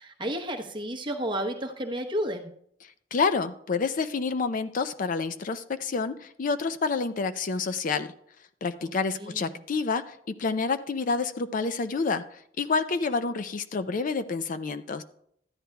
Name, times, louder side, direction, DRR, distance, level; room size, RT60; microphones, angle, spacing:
voice 1, 0.0-2.5 8.8-9.6, right 1 dB, 25° right, 3 dB, 1.0 m, -32 dB
voice 2, 3.1-8.1 8.6-15.0, left 4 dB, 45° left, 11 dB, 0.4 m, -28 dB
13.5 x 10.0 x 2.3 m, 0.68 s
head